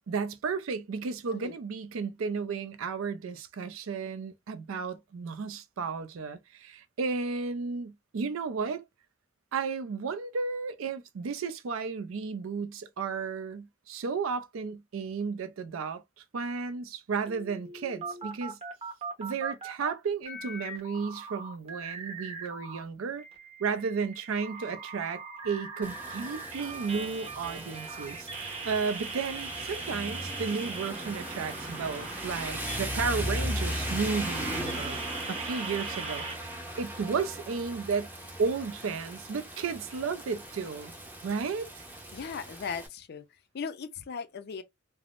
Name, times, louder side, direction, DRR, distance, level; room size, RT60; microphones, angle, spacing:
voice 1, 0.1-8.8 9.5-18.6 19.2-23.2 23.6-35.0 35.3-38.1 38.4-40.9 41.2-41.8, right 5 dB, 80° right, 0.4 m, -33 dB
sound 1, 17.3-19.9 20.2-22.8 23.2-36.3, right 4 dB, 30° right, 0.9 m, -40 dB
Rain, 25.8-42.9, equal, 10° right, 0.6 m, -38 dB
voice 2, 42.1-43.2 43.5-44.6, left 6 dB, 55° left, 0.4 m, -37 dB
3.4 x 2.0 x 2.4 m
head